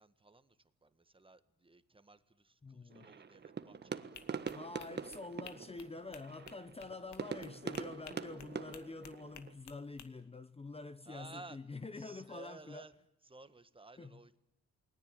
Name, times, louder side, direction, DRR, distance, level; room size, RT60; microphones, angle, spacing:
voice 1, 0.0-4.7 4.9-5.1 6.8-7.3 11.1-11.6 11.9-12.9 13.2-14.4, right 3 dB, 15° right, 1.6 m, -56 dB
voice 2, 2.6-3.1 4.5-12.9 14.0-14.2, left 3 dB, 20° left, 1.0 m, -47 dB
sound 1, 2.9-9.5, right 6 dB, 35° right, 1.5 m, -44 dB
sound 2, 4.1-10.1, left 8 dB, 70° left, 2.2 m, -56 dB
29.0 x 20.5 x 9.2 m
cardioid pair, 90°, 30 cm